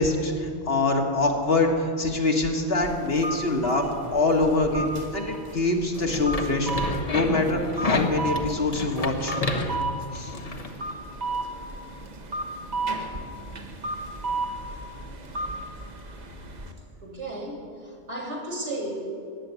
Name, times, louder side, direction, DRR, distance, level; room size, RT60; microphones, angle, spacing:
voice 1, 0.0-9.4 10.1-10.3, left 2 dB, 50° left, 1 dB, 1.8 m, -24 dB
sound 1, 2.8-16.7, right 2 dB, 35° right, 1.2 m, -34 dB
sound 2, 5.9-10.7, left 2 dB, 30° left, 1.1 m, -30 dB
voice 2, 17.0-19.0, right 1 dB, 65° right, -1 dB, 3.2 m, -34 dB
14.0 x 9.5 x 9.3 m, 2.4 s
omnidirectional pair, 1.3 m